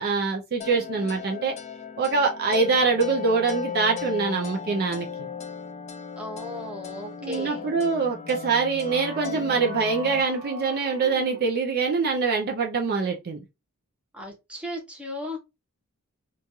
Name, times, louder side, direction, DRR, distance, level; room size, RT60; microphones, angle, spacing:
voice 1, 0.0-1.5 2.0-5.3 7.2-13.4, right 4 dB, 45° right, 0.5 m, -24 dB
sound 1, 0.6-10.2, left 7 dB, 30° left, 0.4 m, -36 dB
voice 2, 6.2-7.7 14.1-15.4, left 1 dB, 5° right, 0.9 m, -36 dB
sound 2, 8.8-11.7, right 1 dB, 30° right, 1.2 m, -42 dB
3.0 x 2.3 x 2.6 m
head